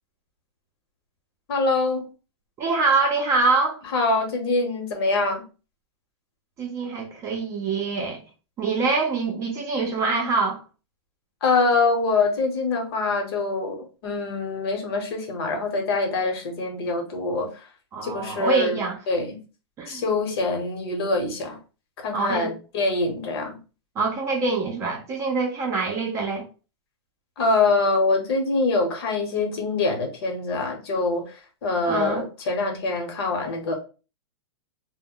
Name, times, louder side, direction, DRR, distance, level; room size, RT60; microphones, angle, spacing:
voice 1, 1.5-2.1 3.9-5.4 11.4-17.5 18.0-18.8 19.1-19.4 19.9-21.6 22.0-23.6 27.4-33.7, left 3 dB, 60° left, 1.0 m, -24 dB
voice 2, 2.6-3.8 6.6-8.2 8.6-10.6 17.9-19.0 19.8-20.0 22.1-22.5 24.0-26.4 31.9-32.2, right 4 dB, 20° right, 0.5 m, -24 dB
2.1 x 2.1 x 3.6 m
hypercardioid pair, 150°, 14 cm